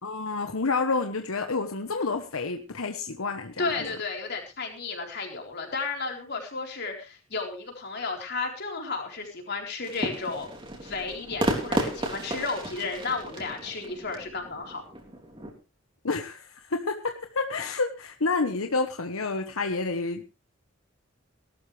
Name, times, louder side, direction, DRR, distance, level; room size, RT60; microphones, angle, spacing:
voice 1, 0.0-3.7 16.0-20.3, left 3 dB, 85° left, 5 dB, 1.2 m, -29 dB
voice 2, 3.6-10.5 10.8-14.8, left 4 dB, 50° left, 2 dB, 4.1 m, -33 dB
sound 1, 9.8-15.5, right 1 dB, 25° right, 3.7 m, -33 dB
18.5 x 13.0 x 3.3 m, 0.30 s
head